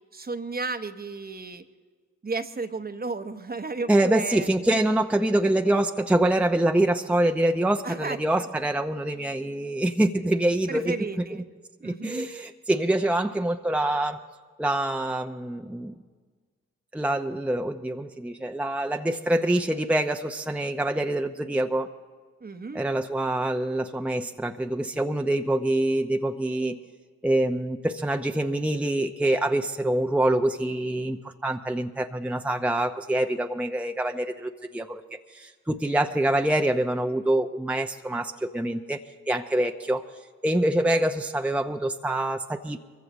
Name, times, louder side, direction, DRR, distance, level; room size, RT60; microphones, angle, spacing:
voice 1, 0.1-1.6 2.2-4.5 7.8-8.5 10.7-11.4 11.8-12.3 22.4-22.9, right 3 dB, 30° right, 9 dB, 1.0 m, -33 dB
voice 2, 3.9-11.2 11.8-14.2 14.6-15.9 16.9-21.9 22.7-26.8 27.2-35.0 35.3-39.0 39.3-40.0 40.4-42.8, right 1 dB, 5° right, 4 dB, 0.8 m, -25 dB
23.5 x 15.0 x 3.1 m, 1.5 s
hypercardioid pair, 45°, 31 cm